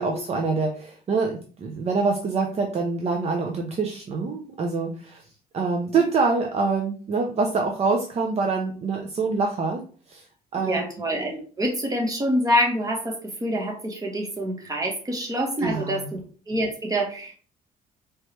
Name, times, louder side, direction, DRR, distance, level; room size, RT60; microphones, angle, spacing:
voice 1, 0.0-5.2 5.5-10.3 10.5-10.8 15.6-16.2, right 4 dB, 40° right, 2 dB, 0.6 m, -25 dB
voice 2, 10.6-13.2 13.4-16.2 16.5-17.4, equal, 20° right, 1 dB, 1.2 m, -26 dB
4.5 x 3.2 x 3.1 m, 0.42 s
cardioid pair, 110°, 17 cm